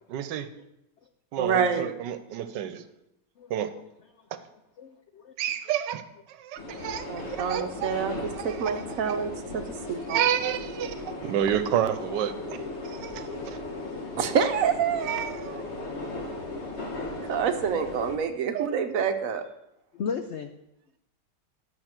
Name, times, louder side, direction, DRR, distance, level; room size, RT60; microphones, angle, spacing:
voice 1, 0.1-0.5 1.3-2.8 3.5-3.7 5.4-6.0 6.3-7.9 8.3-9.2 10.1-12.3 12.8-13.6 15.1-15.3 18.5-18.7, right 10 dB, 90° right, 11 dB, 1.3 m, -30 dB
voice 2, 1.4-1.9 7.1-10.2 14.2-15.6 17.2-19.4, right 7 dB, 60° right, 7 dB, 1.1 m, -27 dB
voice 3, 3.4-3.8 4.2-4.3 4.8-5.3 8.5-8.7 9.7-9.8 13.6-14.2 16.2-16.7 19.9-20.5, left 6 dB, 80° left, 7 dB, 0.6 m, -39 dB
sound 1, 6.6-18.2, left 2 dB, 45° left, 1.2 m, -37 dB
11.0 x 6.5 x 4.4 m, 0.84 s
omnidirectional pair, 1.9 m